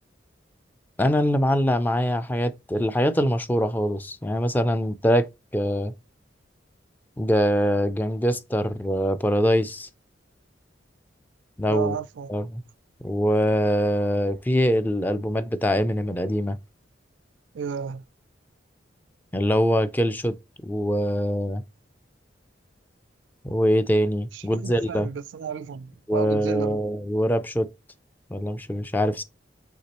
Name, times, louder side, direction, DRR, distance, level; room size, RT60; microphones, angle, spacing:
voice 1, 1.0-5.3 5.5-5.9 7.2-9.9 11.6-11.9 12.3-12.6 13.0-16.6 19.3-20.3 20.6-21.6 23.4-25.1 26.1-27.7 28.3-29.2, equal, 10° left, 0.3 m, -23 dB
voice 2, 11.7-12.3 17.5-18.0 24.3-26.8, right 7 dB, 70° right, 0.3 m, -33 dB
6.1 x 2.9 x 2.9 m
head